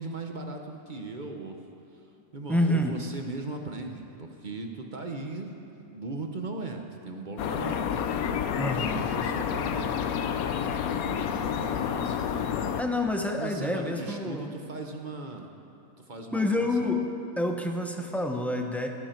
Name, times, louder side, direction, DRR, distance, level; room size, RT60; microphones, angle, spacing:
voice 1, 0.0-1.6 1.9-5.5 5.8-10.1 10.7-12.8 13.3-15.5 16.0-16.9, right 3 dB, 40° right, 3 dB, 0.9 m, -39 dB
voice 2, 2.5-3.0 8.6-9.1 12.8-14.5 16.3-17.0 17.4-18.9, left 1 dB, ahead, 2 dB, 0.6 m, -28 dB
sound 1, 7.4-12.8, left 8 dB, 80° left, 1.1 m, -29 dB
15.0 x 13.0 x 4.5 m, 2.9 s
omnidirectional pair, 1.5 m